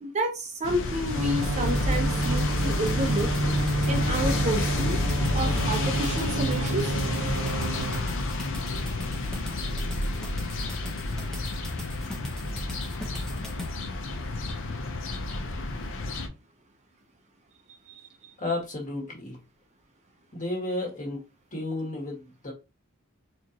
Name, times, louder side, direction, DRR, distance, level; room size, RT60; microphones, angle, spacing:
voice 1, 0.0-3.3 3.9-5.0 5.3-7.0 17.9-18.3, right 1 dB, 30° right, 4 dB, 0.6 m, -30 dB
sound 1, 0.6-16.3, left 2 dB, 60° left, 0.7 m, -30 dB
sound 2, 1.1-8.0, right 2 dB, 70° right, 0.7 m, -29 dB
sound 3, 1.4-13.7, left 2 dB, 5° left, 0.9 m, -42 dB
voice 2, 18.4-19.4 20.3-21.2 21.5-22.5, left 2 dB, 35° left, -2 dB, 1.6 m, -32 dB
4.4 x 2.5 x 2.9 m, 0.28 s
head